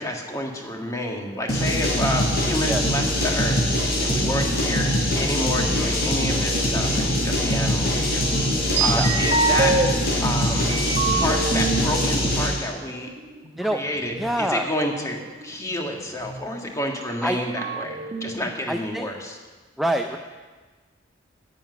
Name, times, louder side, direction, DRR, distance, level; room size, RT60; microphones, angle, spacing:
voice 1, 0.0-3.6 4.0-8.2 8.5-9.7 10.2-10.7 11.1-13.1 13.6-19.4, left 1 dB, 15° left, 1 dB, 1.6 m, -29 dB
sound 1, 1.4-2.0 5.7-7.1 7.9-9.9 10.4-12.1 12.9-14.3 14.8-14.9 15.1-16.5 17.0-17.1 17.3-18.3, right 4 dB, 35° right, 1.2 m, -27 dB
sound 2, 1.5-12.6, equal, 55° left, 4.5 m, -23 dB
voice 2, 2.6-3.0 8.9-9.1 13.6-13.8 14.2-14.6 17.2-17.4 18.7-19.1 19.8-20.2, right 1 dB, ahead, 4 dB, 0.5 m, -26 dB
10.5 x 7.8 x 9.3 m, 1.3 s
head